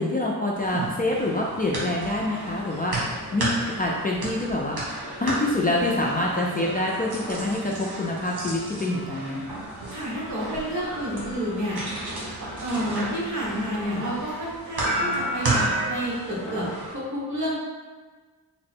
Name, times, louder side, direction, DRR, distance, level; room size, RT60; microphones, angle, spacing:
voice 1, 0.0-2.9 3.3-4.8 5.2-9.4, left 1 dB, 25° left, -3 dB, 0.3 m, -26 dB
sound 1, 0.5-16.9, right 1 dB, 80° right, 1.2 m, -32 dB
voice 2, 9.9-12.0 12.6-16.7 16.9-17.6, equal, 50° right, -6 dB, 1.2 m, -29 dB
3.6 x 2.1 x 4.2 m, 1.4 s
wide cardioid pair, 115°, 38 cm